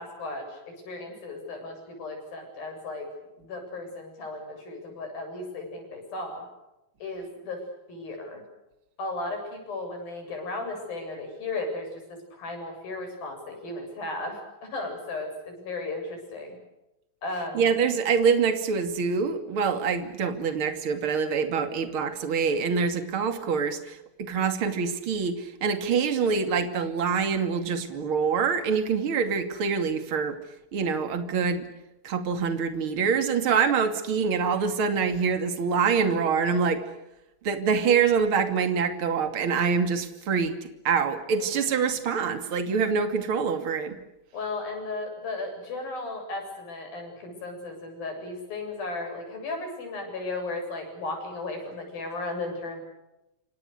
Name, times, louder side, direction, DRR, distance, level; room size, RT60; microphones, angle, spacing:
voice 1, 0.0-3.1 3.4-6.5 7.0-7.6 7.9-8.4 9.0-12.0 12.3-16.6 17.2-17.6 41.4-41.6 44.3-52.8, left 2 dB, 85° left, 4 dB, 9.6 m, -35 dB
voice 2, 17.5-30.4 30.7-31.7 32.0-36.8 37.4-40.6 40.8-44.0, right 6 dB, 40° right, 7 dB, 3.0 m, -25 dB
28.5 x 26.5 x 6.7 m, 0.93 s
omnidirectional pair, 4.1 m